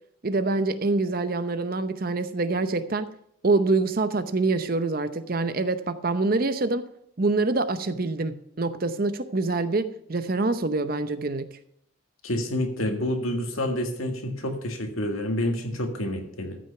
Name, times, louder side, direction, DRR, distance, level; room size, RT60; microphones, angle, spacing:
voice 1, 0.2-3.1 3.4-6.9 7.2-11.5, right 3 dB, 45° right, 11 dB, 0.7 m, -25 dB
voice 2, 12.2-16.6, left 1 dB, 85° left, 4 dB, 1.9 m, -28 dB
13.5 x 6.4 x 5.8 m, 0.71 s
head